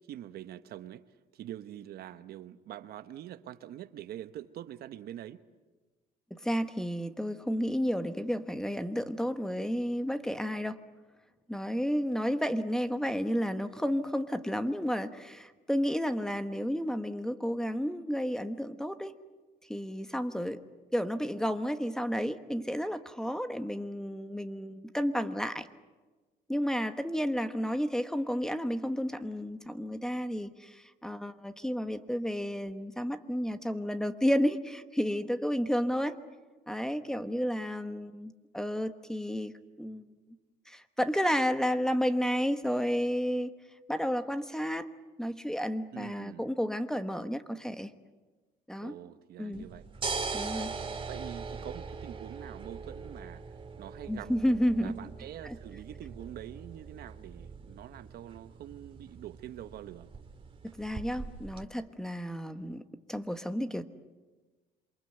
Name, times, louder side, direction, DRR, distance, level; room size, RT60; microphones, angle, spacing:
voice 1, 0.1-1.0 1.3-5.4 45.9-46.5 48.8-49.9 51.1-54.3 54.8-60.1, right 12 dB, 65° right, 1.1 m, -45 dB
voice 2, 6.3-10.8 11.5-19.1 19.7-20.6 20.9-25.7 26.5-36.2 36.7-40.1 40.7-43.5 43.9-44.9 45.2-47.9 48.7-48.9 49.4-49.7 50.3-50.7 54.1-54.9 55.4-55.6 60.8-62.8 63.1-63.8, equal, 5° left, 1.3 m, -31 dB
sound 1, 49.5-61.6, right 4 dB, 30° right, 2.3 m, -41 dB
28.0 x 23.5 x 8.0 m
cardioid pair, 110°, 17 cm